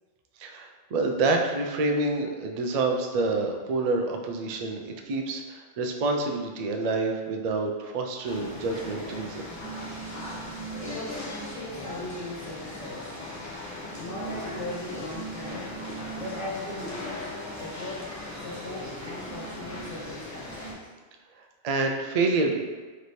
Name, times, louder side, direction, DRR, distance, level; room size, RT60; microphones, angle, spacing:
voice 1, 0.4-9.5 21.6-22.6, right 3 dB, 80° right, 3 dB, 0.3 m, -27 dB
sound 1, 8.2-20.7, equal, 20° left, 0.5 m, -38 dB
voice 2, 10.8-13.2 14.0-15.8 16.2-20.9, left 2 dB, 85° left, -8 dB, 1.8 m, -39 dB
3.3 x 3.1 x 4.1 m, 1.4 s
omnidirectional pair, 1.2 m